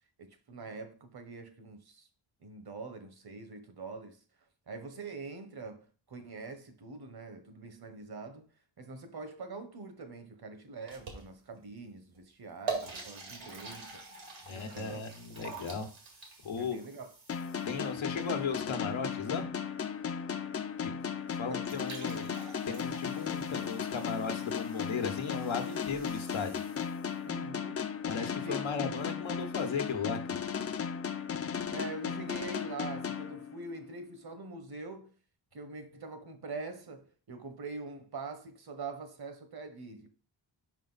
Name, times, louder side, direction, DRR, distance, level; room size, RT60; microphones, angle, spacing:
voice 1, 0.2-2.1 2.4-4.2 4.7-8.5 8.8-14.0 14.5-15.0 16.6-17.1 21.5-22.2 27.2-27.9 28.4-28.6 31.7-35.1 35.5-40.1, right 3 dB, 55° right, 1.1 m, -44 dB
sound 1, 10.9-11.6 12.1-12.2 12.7-17.9 21.3-21.4 21.6-27.1, right 4 dB, 80° right, 2.0 m, -45 dB
voice 2, 14.5-15.9 16.4-16.9 17.7-19.4 20.8-21.0 21.3-22.3 22.7-26.6 28.1-30.2, left 5 dB, 85° left, 1.1 m, -36 dB
sound 2, 17.3-33.9, left 7 dB, 30° left, 0.5 m, -36 dB
5.1 x 5.0 x 4.0 m
wide cardioid pair, 95°, 46 cm